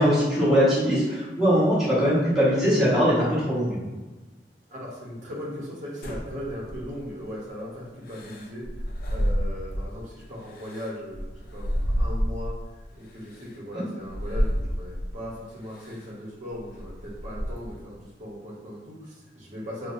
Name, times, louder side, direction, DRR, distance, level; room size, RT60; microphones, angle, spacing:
voice 1, 0.0-3.8 13.7-13.8, equal, ahead, -11 dB, 1.3 m, -21 dB
voice 2, 4.7-8.6 9.1-11.2 11.5-19.9, equal, 45° right, -4 dB, 0.9 m, -38 dB
sound 1, 6.0-7.2 8.1-10.0 10.4-12.7 13.3-13.5 14.0-15.2 15.7-16.1 16.5-17.8, equal, 55° left, 0.4 m, -29 dB
4.5 x 2.1 x 2.6 m, 1.2 s
head